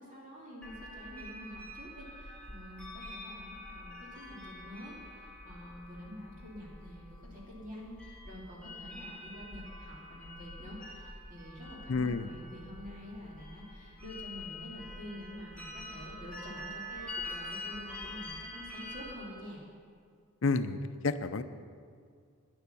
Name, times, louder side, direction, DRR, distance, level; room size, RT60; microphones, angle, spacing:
voice 1, 0.0-19.6, equal, 35° right, -5 dB, 2.8 m, -47 dB
sound 1, 0.6-19.1, left 1 dB, 5° left, 1.4 m, -46 dB
voice 2, 11.9-12.3 20.4-21.4, left 3 dB, 60° left, 11 dB, 0.6 m, -30 dB
12.0 x 10.5 x 6.9 m, 2.1 s
head